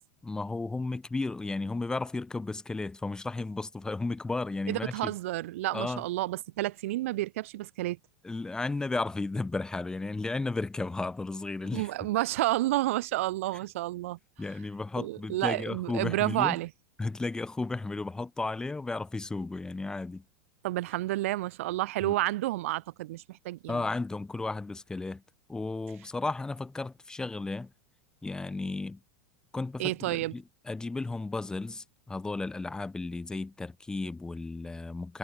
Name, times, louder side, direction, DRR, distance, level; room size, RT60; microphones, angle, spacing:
voice 1, 0.2-5.1 5.7-6.0 8.2-11.9 14.4-16.6 17.0-20.2 22.0-22.1 23.7-25.2 25.5-27.7 28.2-29.0 29.5-35.2, left 3 dB, 10° left, 6.5 m, -34 dB
voice 2, 4.7-8.0 11.7-14.2 15.0-16.7 20.6-23.8 29.8-30.3, right 17 dB, 70° right, 1.5 m, -30 dB
supercardioid pair, 125°, 7 cm